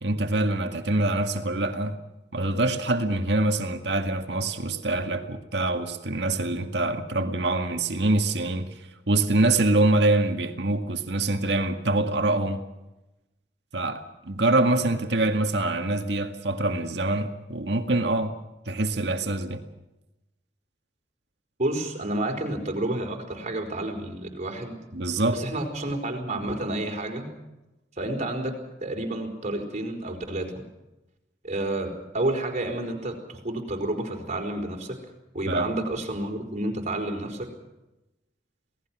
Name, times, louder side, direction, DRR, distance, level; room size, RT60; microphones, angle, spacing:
voice 1, 0.0-2.0 2.3-8.7 9.1-12.6 13.7-18.3 18.7-19.6 24.9-25.4 35.5-35.7, right 2 dB, 70° right, 5 dB, 2.0 m, -25 dB
voice 2, 21.6-24.8 25.3-27.3 28.0-28.5 28.8-30.6 31.4-35.0 35.3-37.5, right 1 dB, 40° right, 3 dB, 4.7 m, -30 dB
28.0 x 18.5 x 6.2 m, 0.98 s
head